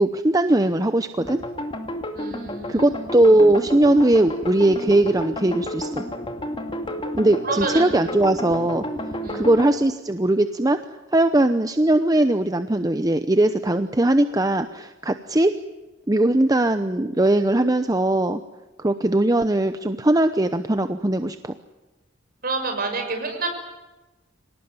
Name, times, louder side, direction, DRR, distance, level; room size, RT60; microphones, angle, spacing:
voice 1, 0.0-1.4 2.7-6.0 7.2-8.8 9.3-10.8 11.1-15.5 16.1-18.4 18.8-21.5, right 1 dB, 20° right, 9 dB, 0.8 m, -19 dB
sound 1, 1.2-9.7, left 1 dB, 25° left, 2.4 m, -31 dB
voice 2, 2.1-2.9 7.4-7.9 9.2-9.5 22.4-23.5, right 3 dB, 50° right, 4 dB, 6.3 m, -28 dB
26.0 x 18.5 x 9.6 m, 1.1 s
head